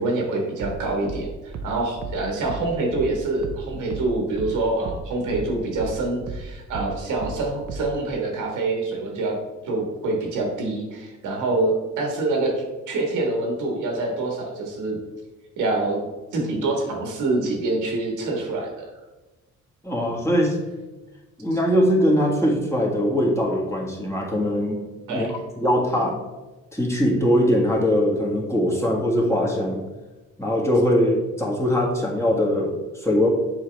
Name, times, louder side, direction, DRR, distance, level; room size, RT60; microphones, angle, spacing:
voice 1, 0.0-9.4 9.6-15.0 15.6-16.0 16.3-18.9 25.1-25.3, right 2 dB, 85° right, 1 dB, 1.7 m, -26 dB
sound 1, 0.6-5.5 5.8-8.0, right 3 dB, 65° right, 0.8 m, -34 dB
voice 2, 19.8-20.6 21.4-26.2 26.7-29.8 30.4-33.3, equal, 10° left, -2 dB, 1.6 m, -21 dB
7.2 x 4.7 x 3.4 m, 1.1 s
cardioid pair, 90°, 30 cm